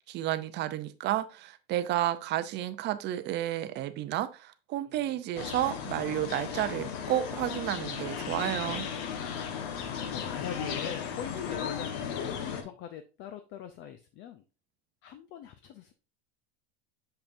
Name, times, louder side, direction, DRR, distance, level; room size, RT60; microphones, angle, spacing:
voice 1, 0.1-8.9, right 13 dB, 35° right, 0.6 m, -31 dB
voice 2, 4.9-5.2 8.3-8.8 9.4-14.4 15.0-15.9, left 9 dB, 40° left, 0.5 m, -43 dB
sound 1, 5.4-12.6, left 7 dB, 60° left, 1.3 m, -35 dB
6.8 x 5.7 x 2.6 m
supercardioid pair, 135°, 32 cm